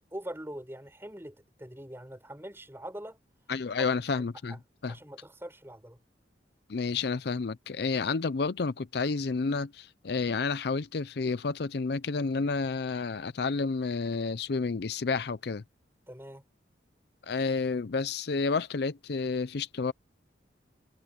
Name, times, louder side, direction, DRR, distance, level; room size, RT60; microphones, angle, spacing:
voice 1, 0.0-3.2 3.8-3.9 4.5-4.6 4.9-6.0 16.1-16.4, right 1 dB, 10° right, 6.8 m, -43 dB
voice 2, 3.5-4.5 4.8-4.9 6.7-15.6 17.2-19.9, left 4 dB, 55° left, 0.5 m, -30 dB
head